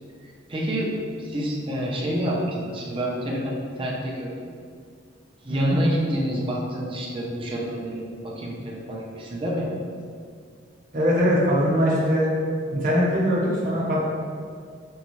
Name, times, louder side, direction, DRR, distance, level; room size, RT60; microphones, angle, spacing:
voice 1, 0.5-4.5 5.4-9.7, equal, 30° right, -3 dB, 0.6 m, -28 dB
voice 2, 10.9-12.3 12.7-14.0, equal, 45° right, -6 dB, 1.0 m, -21 dB
5.3 x 2.3 x 3.0 m, 2.1 s
head